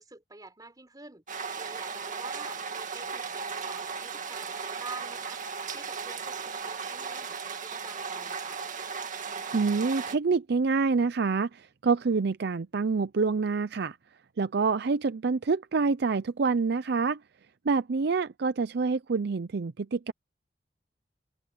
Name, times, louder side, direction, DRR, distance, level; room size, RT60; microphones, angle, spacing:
voice 1, 0.0-8.6, right 3 dB, 20° right, 4.2 m, -48 dB
sound 1, 1.3-10.2, right 5 dB, 45° right, 2.0 m, -36 dB
voice 2, 9.5-14.0 14.4-17.2 17.6-20.1, right 4 dB, 60° right, 0.5 m, -27 dB
head